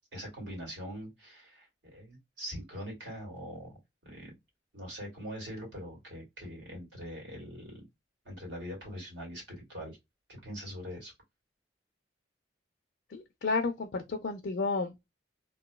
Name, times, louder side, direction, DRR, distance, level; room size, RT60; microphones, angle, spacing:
voice 1, 0.1-3.8 4.0-4.3 4.7-7.8 8.3-10.0 10.4-11.1, equal, 85° right, 1.9 m, -42 dB
voice 2, 13.1-15.1, left 3 dB, 65° left, 0.4 m, -32 dB
2.9 x 2.2 x 2.2 m
head